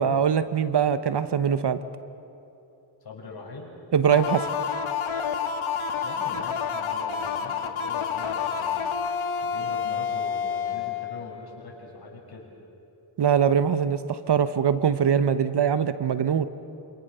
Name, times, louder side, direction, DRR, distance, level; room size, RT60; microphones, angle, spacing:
voice 1, 0.0-1.8 3.9-4.5 13.2-16.5, right 7 dB, 55° right, 12 dB, 1.1 m, -22 dB
voice 2, 3.0-3.7 6.0-9.0 9.4-12.5, left 3 dB, 50° left, -3 dB, 7.6 m, -42 dB
sound 1, 4.1-11.7, left 7 dB, 80° left, 1.7 m, -29 dB
27.0 x 26.0 x 6.9 m, 2.8 s
cardioid pair, 80°, 48 cm